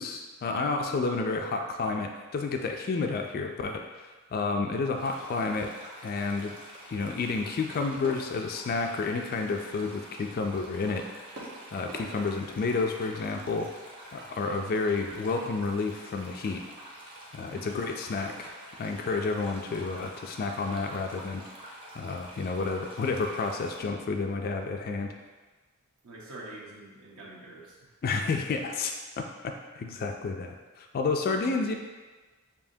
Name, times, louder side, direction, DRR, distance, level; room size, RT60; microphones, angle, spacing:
voice 1, 0.0-5.7 6.0-6.5 6.9-11.0 11.7-13.7 14.1-16.6 17.3-18.5 18.8-21.4 22.0-25.1 28.0-31.7, left 4 dB, 45° left, 4 dB, 0.3 m, -30 dB
sound 1, 5.0-23.8, right 1 dB, 25° right, 0.7 m, -48 dB
sound 2, 8.0-9.6 11.3-13.4, right 1 dB, 90° right, 1.4 m, -47 dB
voice 2, 26.0-27.9, right 2 dB, 70° right, -5 dB, 1.0 m, -46 dB
7.0 x 2.8 x 2.7 m, 1.3 s
head